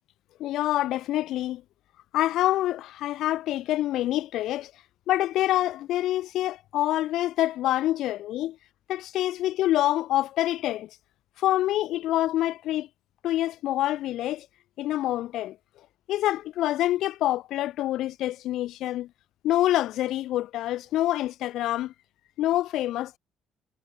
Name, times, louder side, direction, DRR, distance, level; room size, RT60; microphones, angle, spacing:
voice 1, 0.4-1.6 2.1-4.7 5.1-8.6 8.9-10.9 11.4-12.9 13.2-14.5 14.8-15.6 16.1-19.1 19.4-21.9 22.4-23.2, left 14 dB, 65° left, 5.3 m, -26 dB
cardioid pair, 170°, 0 cm